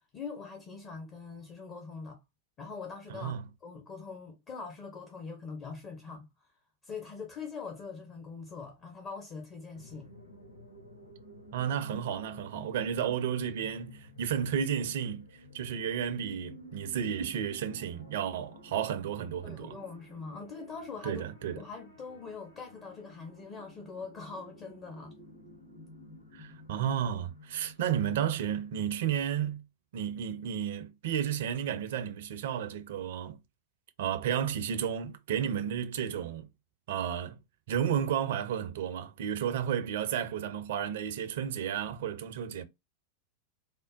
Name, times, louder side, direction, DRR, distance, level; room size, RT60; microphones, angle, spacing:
voice 1, 0.1-2.2 2.6-3.3 3.6-6.3 6.8-10.1 19.4-21.2 21.5-25.1, left 4 dB, 30° left, 0.9 m, -43 dB
voice 2, 3.1-3.5 11.5-15.3 15.5-19.8 21.0-21.6 26.3-29.6 29.9-33.4 34.0-36.4 36.9-37.4 37.7-42.6, right 9 dB, 55° right, 0.5 m, -32 dB
sound 1, 9.7-29.1, left 1 dB, 85° left, 1.3 m, -52 dB
3.6 x 2.0 x 3.8 m
figure-of-eight pair, 90°, 0 cm